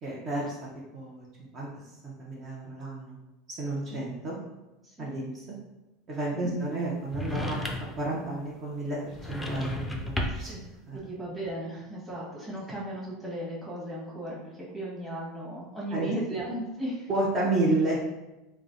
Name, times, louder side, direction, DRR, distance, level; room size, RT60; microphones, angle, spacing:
voice 1, 0.0-0.5 0.9-1.3 1.5-1.7 2.0-3.2 3.5-4.4 5.0-5.4 6.1-10.6 10.9-11.0 15.9-16.1 17.1-18.0, right 2 dB, 45° right, -6 dB, 0.7 m, -31 dB
sound 1, 7.1-8.0 9.1-10.6, left 1 dB, 10° left, 0.4 m, -32 dB
voice 2, 10.3-10.6 10.9-14.4 14.7-17.1, right 1 dB, 15° right, -6 dB, 1.1 m, -36 dB
3.2 x 2.0 x 2.5 m, 1.0 s
hypercardioid pair, 100°, 0 cm